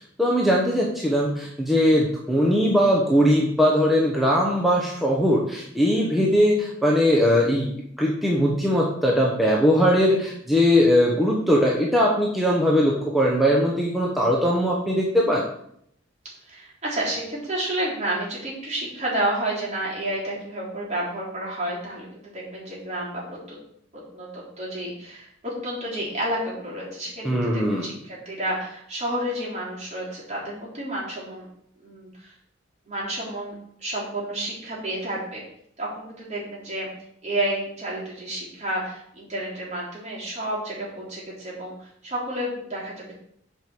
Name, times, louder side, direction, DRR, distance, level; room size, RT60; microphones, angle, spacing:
voice 1, 0.2-15.4 27.2-27.9, equal, ahead, -3 dB, 1.0 m, -20 dB
voice 2, 16.5-23.2 23.5-23.6 23.9-31.5 31.8-32.3 32.9-33.5 33.8-35.4 35.8-36.9 37.2-43.1, right 1 dB, 35° right, -5 dB, 3.7 m, -30 dB
7.8 x 5.2 x 6.2 m, 0.70 s
head